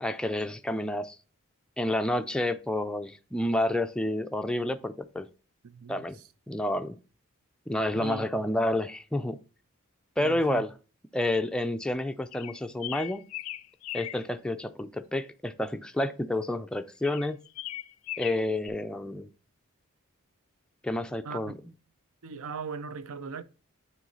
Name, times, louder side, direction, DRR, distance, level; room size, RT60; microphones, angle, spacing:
voice 1, 0.0-1.2 1.8-5.3 5.9-6.2 6.5-7.0 7.7-9.4 10.2-10.7 11.1-13.2 13.9-17.4 18.2-19.3 20.8-21.5, left 1 dB, 5° left, 0.4 m, -29 dB
voice 2, 5.6-6.2 7.9-8.3 10.2-10.6 21.2-21.5 22.2-23.4, right 4 dB, 70° right, 0.6 m, -39 dB
sound 1, 12.3-14.2 17.0-18.7, left 14 dB, 80° left, 0.4 m, -38 dB
9.2 x 3.1 x 3.9 m
head